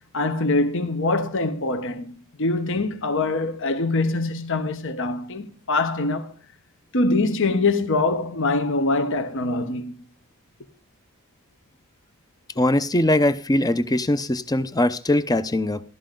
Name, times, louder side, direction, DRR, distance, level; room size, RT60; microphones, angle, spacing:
voice 1, 0.1-6.3 6.9-10.0, left 2 dB, 60° left, 1.1 m, -24 dB
voice 2, 12.6-15.8, left 1 dB, 15° left, 0.6 m, -21 dB
13.5 x 11.5 x 3.8 m
head